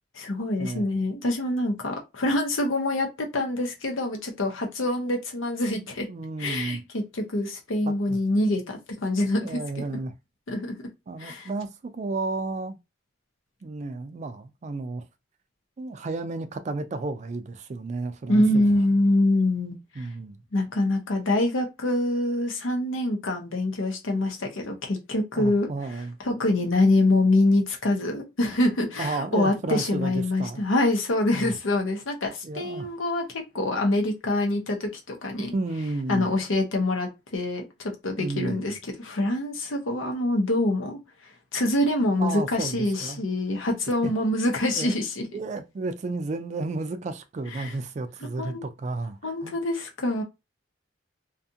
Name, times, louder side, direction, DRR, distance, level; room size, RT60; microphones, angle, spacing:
voice 1, 0.1-6.1 6.4-9.6 9.9-10.0 10.5-10.7 11.2-11.5 18.3-20.1 20.5-25.7 26.2-35.5 36.1-41.0 41.5-45.2 47.5-47.7 48.4-48.6 49.2-50.2, left 1 dB, 85° left, 0.7 m, -25 dB
voice 2, 5.6-6.8 8.1-8.2 9.4-10.1 11.1-12.8 13.6-15.0 15.8-18.6 20.0-20.4 25.3-26.2 29.0-30.6 31.3-31.5 32.4-32.9 35.5-36.3 38.2-38.7 42.2-43.2 44.0-44.1 44.8-45.0 45.3-49.6, right 3 dB, 35° right, 0.3 m, -32 dB
2.5 x 2.4 x 2.7 m
head